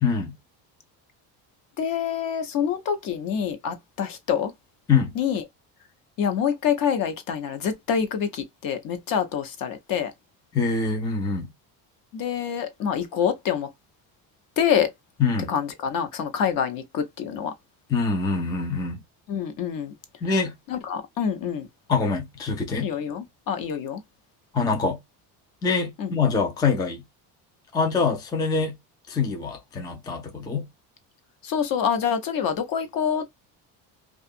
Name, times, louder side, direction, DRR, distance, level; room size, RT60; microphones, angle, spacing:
voice 1, 0.0-0.3 4.9-5.1 10.5-11.5 15.2-15.5 17.9-19.0 20.2-20.5 21.9-22.9 24.5-25.0 25.6-27.0 27.7-28.7 29.1-30.7, left 4 dB, 10° left, 0.3 m, -24 dB
voice 2, 1.8-4.5 5.2-5.4 6.2-10.1 12.1-13.7 14.6-14.9 15.5-17.5 19.3-19.9 20.7-21.7 22.8-24.0 26.0-26.1 31.4-33.3, left 8 dB, 55° left, 0.7 m, -26 dB
2.6 x 2.4 x 2.4 m
cardioid pair, 150°, 41 cm